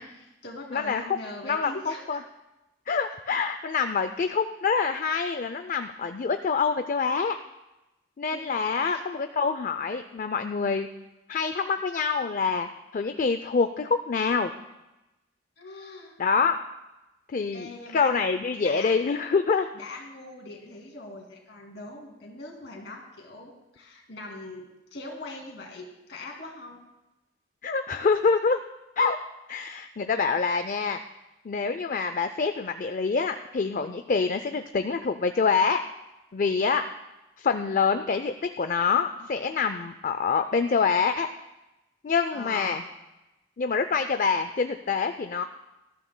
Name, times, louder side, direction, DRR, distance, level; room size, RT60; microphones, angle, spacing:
voice 1, 0.0-2.2 8.3-9.0 15.6-16.1 17.5-18.1 18.6-19.0 19.7-24.7 24.9-26.8 42.3-42.8, left 2 dB, 60° left, 0 dB, 2.6 m, -41 dB
voice 2, 0.7-1.2 1.4-2.2 2.9-7.4 8.2-10.9 11.3-14.5 16.2-16.6 17.3-19.7 27.6-28.6 29.0-29.2 29.5-31.0 31.4-35.8 36.3-36.8 37.4-41.3 42.0-42.8 43.6-45.4, left 5 dB, 45° left, 9 dB, 0.4 m, -26 dB
19.0 x 13.0 x 2.2 m, 1.0 s
head